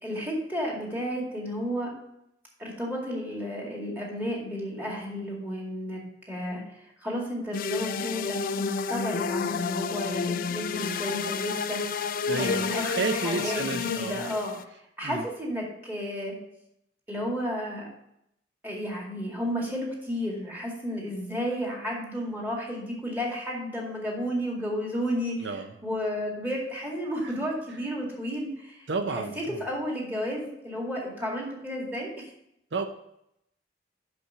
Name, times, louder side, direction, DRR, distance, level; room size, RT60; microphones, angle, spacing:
voice 1, 0.0-2.0 2.6-6.0 6.3-12.1 12.4-12.8 13.1-14.5 15.0-16.3 17.1-17.9 18.6-25.5 25.8-28.9 29.1-32.3, equal, 10° right, -2 dB, 2.2 m, -32 dB
sound 1, 7.5-14.6, left 5 dB, 50° left, 0.4 m, -30 dB
voice 2, 12.3-14.2 15.0-15.3 25.4-25.7 27.2-27.3 28.9-29.6 32.7-32.9, right 4 dB, 80° right, 7 dB, 0.6 m, -31 dB
6.0 x 5.6 x 6.6 m, 0.79 s
head